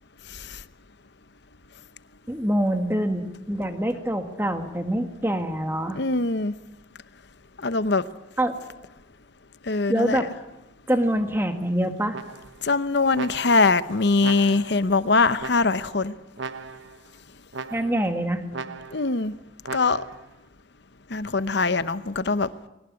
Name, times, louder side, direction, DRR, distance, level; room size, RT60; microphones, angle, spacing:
voice 1, 0.3-0.6 5.9-6.5 7.6-8.0 9.6-10.3 12.6-16.1 18.9-19.3 19.7-20.0 21.1-22.5, left 3 dB, 55° left, 0.9 m, -22 dB
voice 2, 2.3-6.0 8.4-8.6 9.9-10.3 10.9-12.2 17.7-18.4, right 1 dB, 10° right, 1.6 m, -25 dB
sound 1, 12.1-12.7 13.1-13.8 14.2-14.9 15.4-16.0 16.4-17.0 17.5-18.1 18.5-19.2 19.6-20.3, right 4 dB, 70° right, 1.0 m, -38 dB
21.5 x 19.0 x 9.6 m
head